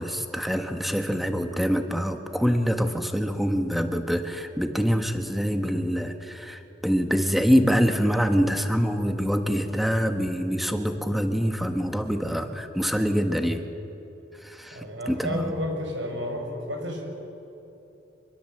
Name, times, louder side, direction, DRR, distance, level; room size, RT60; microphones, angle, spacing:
voice 1, 0.0-13.6 14.4-15.5, equal, ahead, 6 dB, 1.4 m, -25 dB
voice 2, 14.7-17.0, equal, 80° right, 2 dB, 5.7 m, -31 dB
25.5 x 21.5 x 7.9 m, 3.0 s
head